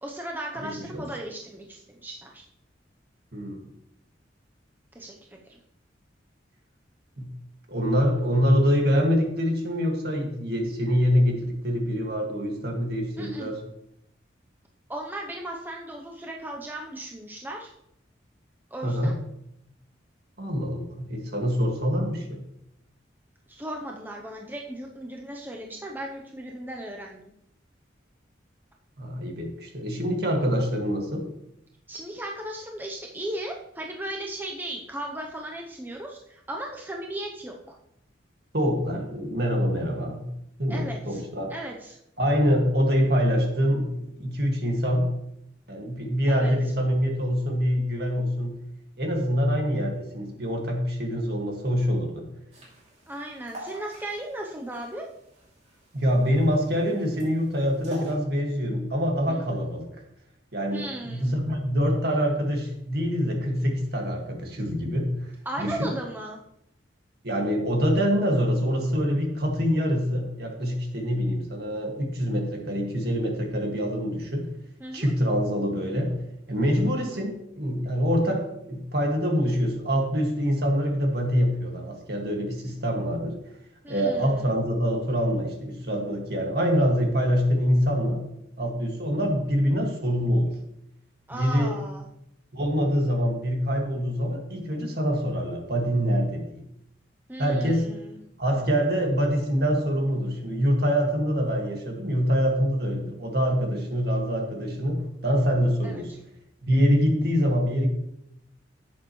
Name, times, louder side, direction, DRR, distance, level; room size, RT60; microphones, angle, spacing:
voice 1, 0.0-2.4 4.9-5.6 13.2-13.5 14.9-17.7 18.7-19.1 23.5-27.2 31.9-37.8 40.7-41.2 41.5-42.0 46.3-46.5 53.1-55.1 59.3-59.4 60.7-61.3 65.4-66.4 74.8-75.1 76.9-77.2 83.8-84.6 91.3-92.1 97.3-98.2 105.8-106.2, right 1 dB, 10° right, 0 dB, 0.7 m, -36 dB
voice 2, 0.6-1.0 3.3-3.6 7.2-7.3 7.7-13.6 18.8-19.2 20.4-22.4 29.0-31.3 38.5-40.3 40.6-41.5 42.2-45.2 45.7-48.6 49.0-52.2 55.9-59.9 60.5-65.2 65.6-65.9 67.2-74.5 74.9-76.2 76.5-83.4 83.9-88.3 88.6-90.5 91.3-91.7 92.5-96.6 97.4-97.9 98.4-106.1 106.6-107.9, equal, 55° right, 1 dB, 2.0 m, -25 dB
sound 1, 52.5-58.2, equal, 35° right, 2.8 m, -41 dB
11.0 x 8.5 x 3.1 m, 0.79 s
head